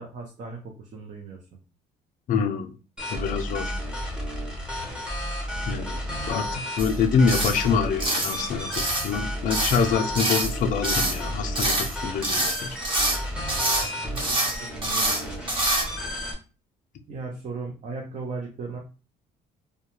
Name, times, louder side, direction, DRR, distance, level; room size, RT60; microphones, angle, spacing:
voice 1, 0.0-1.4 13.9-15.4 17.1-18.8, right 3 dB, 45° right, 0 dB, 0.6 m, -37 dB
voice 2, 2.3-2.7 3.1-3.7 5.7-6.0 6.3-12.8, left 6 dB, 50° left, 3 dB, 0.4 m, -26 dB
sound 1, 3.0-16.3, equal, 5° right, 0.7 m, -32 dB
sound 2, 6.8-6.9 7.3-7.6 8.0-8.4 8.7-9.1 9.5-9.8 10.1-10.5 10.8-11.2 11.5-11.9 12.2-13.2 13.5-13.9 14.1-14.5 14.8-15.2 15.5-15.8, right 1 dB, 30° right, 0.9 m, -25 dB
2.2 x 2.2 x 2.9 m, 0.34 s
cardioid pair, 110°, 17 cm